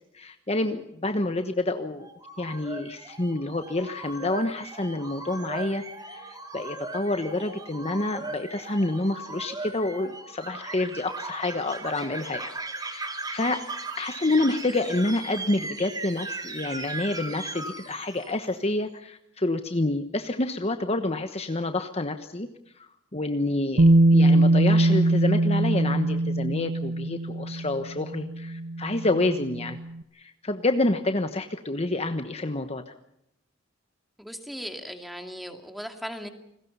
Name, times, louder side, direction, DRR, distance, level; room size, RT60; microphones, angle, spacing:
voice 1, 0.1-2.1 2.4-12.5 12.8-13.6 14.0-22.5 22.8-23.8 24.1-29.8 30.2-32.9, left 2 dB, 30° left, 7 dB, 1.2 m, -28 dB
sound 1, 1.9-18.5, right 3 dB, 20° right, 2.5 m, -38 dB
Bass guitar, 23.8-29.8, right 2 dB, 70° right, 0.8 m, -22 dB
voice 2, 34.2-36.3, equal, ahead, 5 dB, 2.5 m, -37 dB
29.0 x 21.0 x 5.6 m, 0.80 s
head